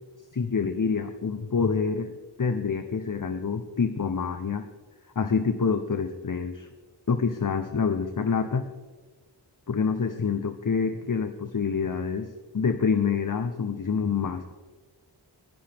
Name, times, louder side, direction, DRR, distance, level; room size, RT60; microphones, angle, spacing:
voice 1, 0.3-2.1 2.4-4.7 5.2-6.7 7.1-8.7 9.7-14.5, left 5 dB, 45° left, 8 dB, 0.8 m, -27 dB
20.0 x 11.0 x 3.4 m, 1.3 s
wide cardioid pair, 40°, 44 cm